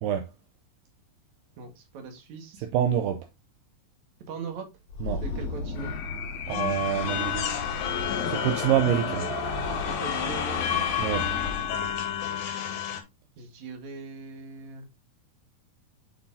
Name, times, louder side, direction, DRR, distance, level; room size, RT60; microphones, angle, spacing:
voice 1, 1.6-2.7 4.3-4.7 5.2-6.0 8.8-9.4 9.9-10.9 13.4-14.9, right 4 dB, 55° right, 2.7 m, -40 dB
voice 2, 2.6-3.3 5.0-5.2 6.5-7.6 8.2-9.3 11.0-11.3, right 10 dB, 75° right, 2.3 m, -26 dB
sound 1, 4.9-12.1, left 5 dB, 55° left, 2.2 m, -33 dB
sound 2, 6.5-13.0, left 9 dB, 80° left, 3.0 m, -31 dB
7.9 x 6.9 x 2.6 m
omnidirectional pair, 4.2 m